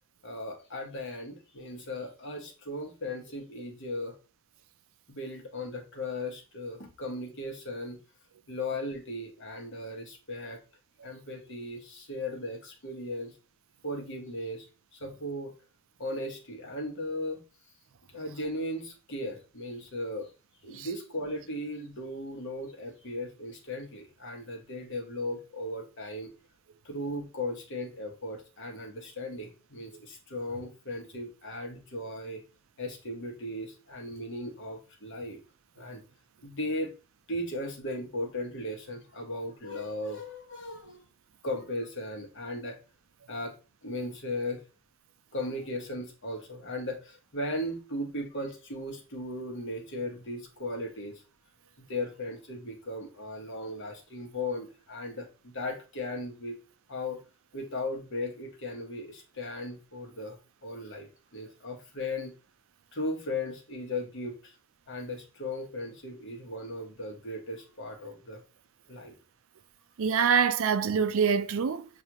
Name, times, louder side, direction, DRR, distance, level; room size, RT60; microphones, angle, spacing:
voice 1, 0.2-4.2 5.1-8.0 8.5-10.6 11.0-13.3 13.8-14.7 14.9-15.5 16.0-17.4 18.1-20.3 20.6-26.3 26.8-32.4 32.8-35.4 35.8-36.0 36.4-36.9 37.3-41.0 41.4-42.8 43.3-43.6 43.8-44.6 45.3-51.2 51.8-56.6 56.9-57.2 57.5-62.3 62.9-64.5 64.9-68.4 68.9-69.1, left 1 dB, 55° left, 1.2 m, -37 dB
voice 2, 70.0-71.9, right 6 dB, 65° right, 0.4 m, -25 dB
7.3 x 2.5 x 2.9 m
head